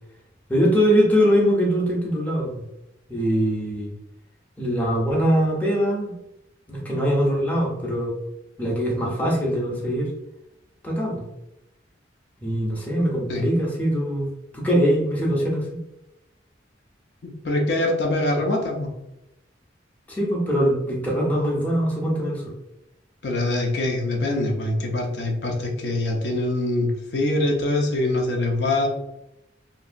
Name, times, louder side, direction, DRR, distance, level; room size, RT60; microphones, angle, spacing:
voice 1, 0.5-2.6 3.1-3.9 4.6-6.1 6.7-8.2 8.6-10.1 10.8-11.2 12.4-15.8 20.1-22.4, equal, 10° left, -4 dB, 0.6 m, -22 dB
voice 2, 17.2-18.9 23.2-28.9, left 2 dB, 60° left, 1 dB, 0.5 m, -24 dB
2.8 x 2.6 x 2.5 m, 0.90 s
head